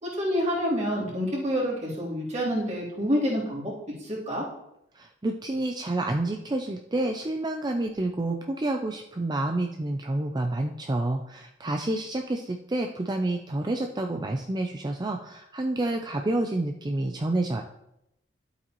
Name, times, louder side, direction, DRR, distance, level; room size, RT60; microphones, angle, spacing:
voice 1, 0.0-4.4, equal, 40° right, -6 dB, 3.4 m, -28 dB
voice 2, 4.9-17.6, right 2 dB, 25° right, 3 dB, 0.5 m, -29 dB
11.5 x 8.1 x 3.1 m, 0.83 s
head